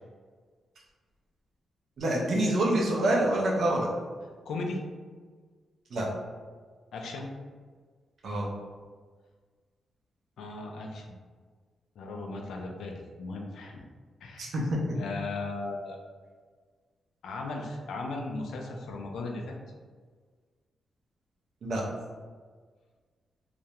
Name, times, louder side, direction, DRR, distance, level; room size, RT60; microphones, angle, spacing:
voice 1, 2.0-3.9 5.9-6.1 8.2-8.5 14.4-14.6 14.9-15.0 21.6-21.8, right 1 dB, 55° right, -3 dB, 0.5 m, -26 dB
voice 2, 4.5-4.8 6.9-7.3 10.4-11.2 12.0-13.8 14.2-14.5 15.0-16.0 17.2-19.6, left 3 dB, 80° left, 1 dB, 0.3 m, -36 dB
2.3 x 2.0 x 2.8 m, 1.5 s
wide cardioid pair, 175°, 0 cm